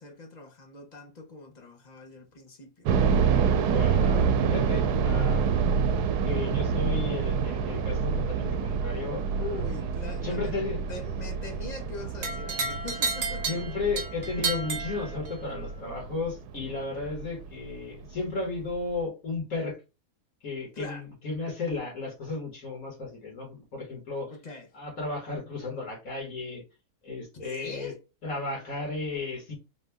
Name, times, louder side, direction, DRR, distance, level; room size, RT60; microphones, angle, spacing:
voice 1, 0.0-2.9 9.4-10.6 10.9-13.6 20.7-21.0 24.3-24.7 27.3-28.0, left 3 dB, 35° left, 0.8 m, -41 dB
sound 1, 2.9-17.7 18.0-18.1 18.7-19.0, right 6 dB, 85° right, 1.1 m, -27 dB
voice 2, 3.6-5.5 6.2-9.5 10.2-10.8 13.5-19.8 20.4-24.3 24.7-26.6 27.0-27.9 28.2-29.5, left 3 dB, 60° left, 2.2 m, -34 dB
sound 2, 12.2-15.6, right 4 dB, 45° right, 1.1 m, -32 dB
4.2 x 2.7 x 3.5 m
omnidirectional pair, 1.6 m